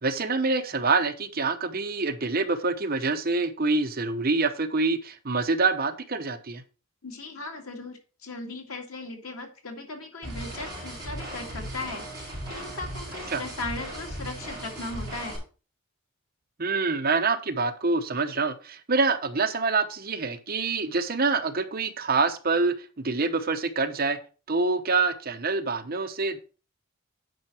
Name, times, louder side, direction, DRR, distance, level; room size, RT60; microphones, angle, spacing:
voice 1, 0.0-6.6 13.3-13.4 16.6-22.7 23.0-24.2 24.5-26.4, right 3 dB, 45° right, 7 dB, 0.9 m, -26 dB
voice 2, 7.0-15.4, left 2 dB, 85° left, 3 dB, 2.1 m, -38 dB
sound 1, 10.2-15.4, right 1 dB, 20° right, 5.0 m, -37 dB
9.4 x 5.8 x 4.4 m, 0.35 s
head